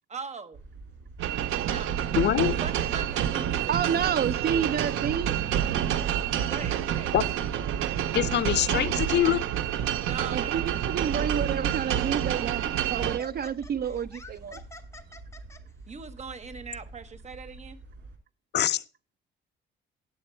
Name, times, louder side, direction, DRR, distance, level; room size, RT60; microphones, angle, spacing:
voice 1, 0.1-0.6 1.6-2.0 2.4-4.7 6.5-7.1 10.0-10.8 15.9-17.8, right 5 dB, 35° right, 1.0 m, -40 dB
sound 1, 0.5-18.2, right 2 dB, 70° right, 2.7 m, -47 dB
sound 2, 1.2-13.2, right 10 dB, 90° right, 0.7 m, -28 dB
voice 2, 2.2-2.5 7.1-7.2 8.1-9.4 18.5-18.8, left 12 dB, 60° left, 0.5 m, -24 dB
voice 3, 3.7-5.3 10.3-14.6, right 8 dB, 55° right, 0.6 m, -29 dB
Laughter, 11.1-11.3 11.9-15.6, left 3 dB, 15° left, 1.0 m, -48 dB
9.5 x 7.9 x 4.3 m
cardioid pair, 90°, 20 cm